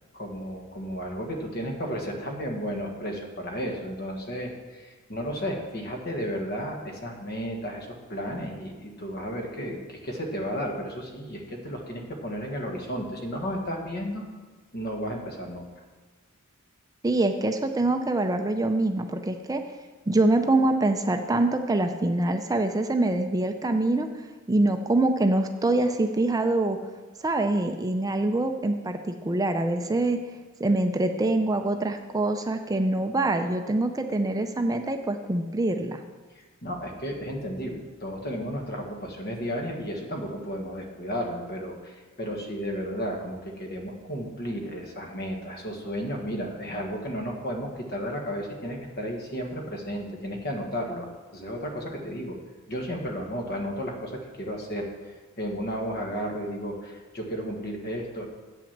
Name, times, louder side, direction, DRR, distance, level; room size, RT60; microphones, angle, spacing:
voice 1, 0.1-14.3 14.7-15.7 36.3-51.1 51.3-52.4 52.7-58.3, equal, 50° left, 2 dB, 1.5 m, -33 dB
voice 2, 17.0-19.6 20.1-24.1 24.5-26.8 27.2-30.2 30.6-36.0, right 2 dB, 15° right, 6 dB, 0.4 m, -24 dB
8.9 x 5.9 x 7.2 m, 1.3 s
head